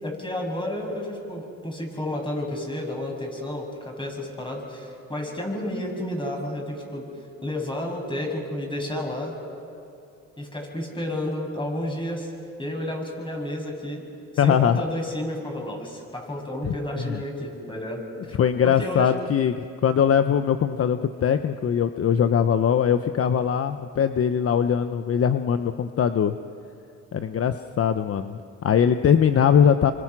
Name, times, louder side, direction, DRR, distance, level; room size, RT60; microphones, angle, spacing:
voice 1, 0.0-7.1 7.4-9.3 10.4-12.3 12.6-14.0 14.4-18.0 18.6-19.1, left 1 dB, 15° left, 1 dB, 7.0 m, -31 dB
voice 2, 14.4-14.8 16.6-17.2 18.3-26.3 27.1-29.9, left 8 dB, 50° left, 9 dB, 0.9 m, -21 dB
28.5 x 25.0 x 6.2 m, 2.8 s
cardioid pair, 90°, 30 cm